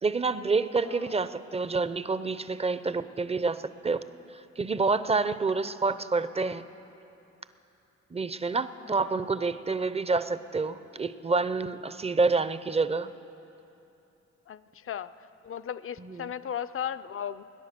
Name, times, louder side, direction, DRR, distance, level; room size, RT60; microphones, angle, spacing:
voice 1, 0.0-4.0 4.6-6.6 8.1-13.1 16.0-16.3, right 4 dB, 20° right, 13 dB, 0.6 m, -28 dB
voice 2, 0.9-1.2 8.8-9.2 14.5-15.1 15.4-17.4, left 9 dB, 50° left, 14 dB, 0.5 m, -36 dB
20.0 x 10.5 x 6.8 m, 2.9 s
cardioid pair, 60°, 29 cm